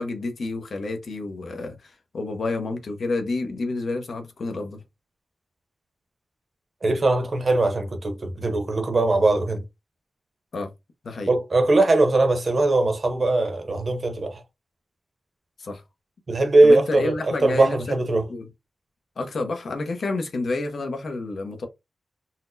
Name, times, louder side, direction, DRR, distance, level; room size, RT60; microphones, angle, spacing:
voice 1, 0.0-4.8 10.5-10.7 11.0-11.3 15.6-15.8 16.6-17.8 18.3-18.5 19.2-21.7, left 3 dB, 60° left, 0.7 m, -29 dB
voice 2, 6.8-9.6 11.3-14.4 16.3-17.1 17.4-18.3, right 2 dB, 40° right, 0.7 m, -20 dB
4.0 x 2.1 x 2.6 m
wide cardioid pair, 155°, 0 cm